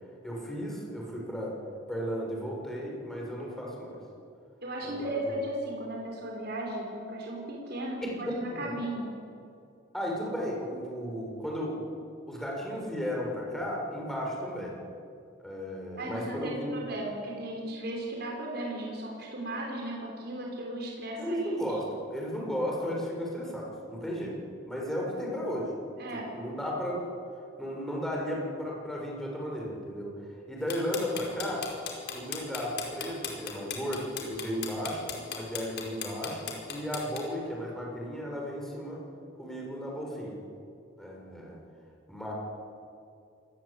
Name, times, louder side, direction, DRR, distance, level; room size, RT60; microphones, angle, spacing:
voice 1, 0.2-1.6 1.9-4.0 4.8-5.3 8.0-8.7 9.9-11.8 12.3-14.7 15.4-16.7 21.2-24.4 24.6-25.7 26.1-27.0 27.6-30.1 30.5-31.6 32.1-39.0 39.4-40.4 41.0-41.6 42.1-42.3, equal, ahead, -3 dB, 6.8 m, -34 dB
voice 2, 4.6-9.1 15.9-21.5 26.0-26.3, right 1 dB, 55° right, -1 dB, 5.7 m, -36 dB
sound 1, 30.7-37.2, left 7 dB, 60° left, 4.9 m, -36 dB
27.5 x 20.5 x 8.9 m, 2.5 s
head